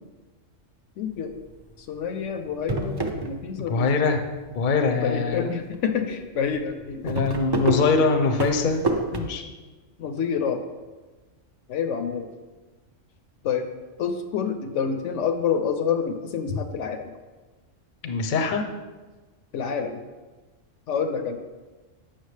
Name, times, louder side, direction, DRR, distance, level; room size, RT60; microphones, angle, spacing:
voice 1, 1.0-1.4 1.8-4.2 5.0-7.1 10.0-10.6 11.7-12.3 13.4-13.7 14.0-17.1 19.5-20.0 20.9-21.4, left 6 dB, 75° left, 7 dB, 0.9 m, -28 dB
sound 1, 1.3-1.7 2.1-2.2 2.5-3.8 4.1-4.8 5.3-5.5 5.7-5.8 6.1-6.2 6.5-9.2, right 2 dB, 40° right, 0.3 m, -28 dB
voice 2, 3.7-4.2 4.5-5.5 7.0-8.8 9.1-9.4 18.0-18.6, left 4 dB, 50° left, 6 dB, 0.7 m, -23 dB
8.3 x 6.0 x 3.2 m, 1.2 s
omnidirectional pair, 1.3 m